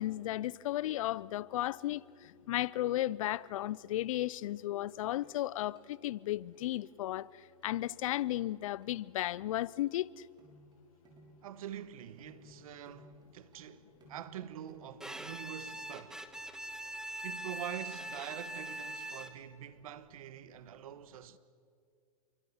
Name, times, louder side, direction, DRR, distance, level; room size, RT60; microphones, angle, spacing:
voice 1, 0.0-7.3 7.6-10.1, left 14 dB, 60° left, 0.6 m, -34 dB
sound 1, 3.4-4.3 4.6-5.9 6.2-6.3 6.5-7.7 8.1-8.2 8.5-9.0 9.3-15.1 15.4-15.7, equal, 20° right, 6.6 m, -62 dB
voice 2, 11.4-16.2 17.2-21.4, right 11 dB, 65° right, 1.5 m, -45 dB
Bowed string instrument, 15.0-19.6, right 1 dB, 5° right, 1.5 m, -42 dB
28.5 x 24.5 x 7.3 m
hypercardioid pair, 120°, 19 cm